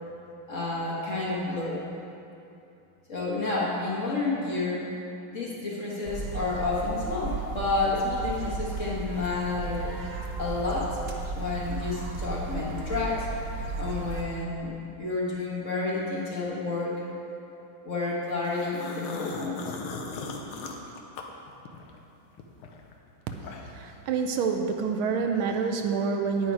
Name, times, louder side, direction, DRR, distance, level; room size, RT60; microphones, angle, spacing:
voice 1, 0.5-1.8 3.1-4.9 5.3-9.9 10.4-10.9 11.3-13.3 13.8-17.0 17.8-19.7, left 3 dB, 40° left, -5 dB, 1.6 m, -30 dB
sound 1, 6.0-14.2, right 4 dB, 55° right, 1.1 m, -35 dB
sound 2, 18.4-22.0 22.4-23.9, left 4 dB, 80° left, 1.7 m, -38 dB
voice 2, 23.7-26.5, right 5 dB, 75° right, 5 dB, 1.5 m, -27 dB
9.5 x 9.3 x 4.7 m, 2.8 s
omnidirectional pair, 2.4 m